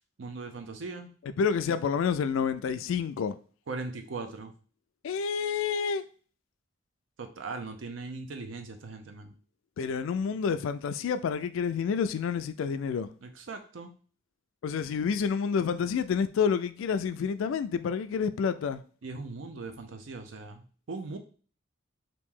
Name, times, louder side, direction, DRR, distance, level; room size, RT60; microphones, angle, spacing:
voice 1, 0.2-1.1 3.7-4.5 7.2-9.3 13.2-13.9 19.0-21.2, right 3 dB, 70° right, 0.6 m, -39 dB
voice 2, 1.4-3.4 5.0-6.0 9.8-13.1 14.6-18.8, left 6 dB, 75° left, 0.3 m, -29 dB
3.0 x 2.6 x 3.6 m
head